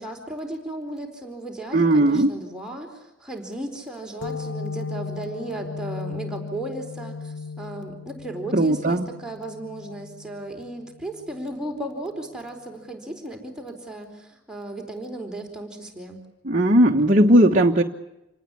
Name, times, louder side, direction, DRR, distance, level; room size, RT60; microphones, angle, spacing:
voice 1, 0.0-16.2, right 1 dB, 5° right, 1 dB, 4.4 m, -35 dB
voice 2, 1.7-2.3 8.5-9.1 16.4-17.8, right 1 dB, 40° right, 1 dB, 1.3 m, -17 dB
sound 1, 4.2-11.5, left 4 dB, 65° left, 2.5 m, -36 dB
28.0 x 19.5 x 8.6 m, 0.93 s
head